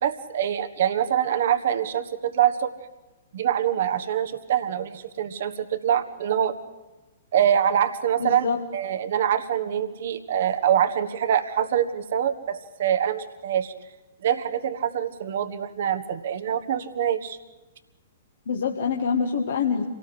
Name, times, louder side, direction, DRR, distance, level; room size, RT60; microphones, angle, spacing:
voice 1, 0.0-2.7 3.3-6.5 7.3-8.5 8.7-13.7 14.2-17.4, right 9 dB, 55° right, 10 dB, 1.5 m, -24 dB
voice 2, 8.2-8.6 18.5-19.8, left 6 dB, 65° left, 1 dB, 1.8 m, -25 dB
27.0 x 18.5 x 8.0 m, 1.1 s
figure-of-eight pair, 110°, 0 cm